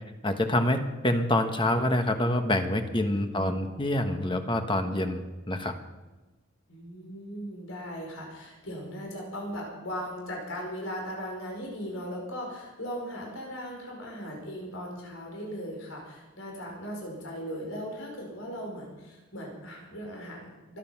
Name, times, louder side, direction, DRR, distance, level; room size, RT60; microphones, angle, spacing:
voice 1, 0.2-5.7, left 1 dB, 25° left, 6 dB, 1.3 m, -26 dB
voice 2, 3.1-3.8 6.7-20.8, equal, 85° left, -1 dB, 5.1 m, -38 dB
24.5 x 9.5 x 6.0 m, 1.1 s
head